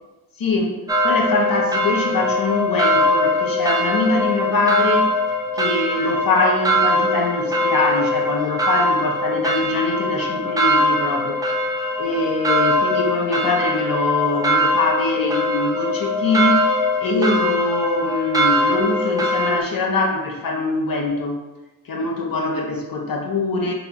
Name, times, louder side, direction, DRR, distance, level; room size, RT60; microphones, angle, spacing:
voice 1, 0.4-0.8 1.0-5.1 5.5-11.4 12.0-21.4 21.8-23.7, left 3 dB, 65° left, 0 dB, 0.8 m, -23 dB
sound 1, 0.9-19.6, left 1 dB, 10° right, 0.4 m, -21 dB
4.1 x 2.8 x 2.3 m, 1.1 s
wide cardioid pair, 85°, 37 cm